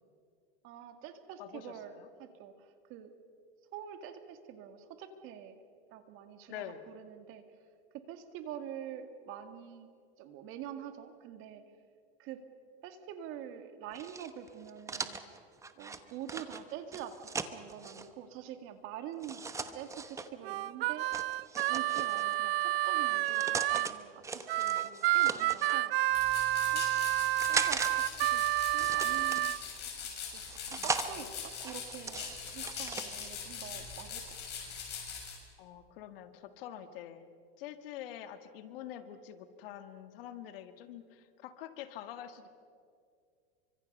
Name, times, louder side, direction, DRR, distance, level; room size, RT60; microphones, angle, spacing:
voice 1, 0.6-3.1 3.7-5.6 5.9-7.5 7.9-9.9 10.2-11.6 12.2-12.4 12.8-15.2 15.8-19.5 19.7-21.1 21.5-25.9 26.7-27.2 27.5-28.4 28.7-29.7 30.3-30.4 30.7-34.4, right 9 dB, 40° right, 7 dB, 2.2 m, -46 dB
voice 2, 1.4-2.1 6.5-6.8 30.8-30.9 35.6-37.3 37.6-42.5, left 11 dB, 65° left, 9 dB, 2.0 m, -46 dB
sound 1, 13.9-18.1 19.2-20.3 21.1-22.3 23.1-23.9 24.2-25.8 26.4-27.9 28.2-29.7 30.3-31.1 31.6-33.3, right 4 dB, 10° right, 1.0 m, -39 dB
Harmonica, 20.4-23.9 24.5-29.6, right 15 dB, 70° right, 0.8 m, -30 dB
sound 2, 26.1-35.4, left 6 dB, 35° left, 7.0 m, -42 dB
29.0 x 25.0 x 5.5 m, 2.3 s
supercardioid pair, 145°, 31 cm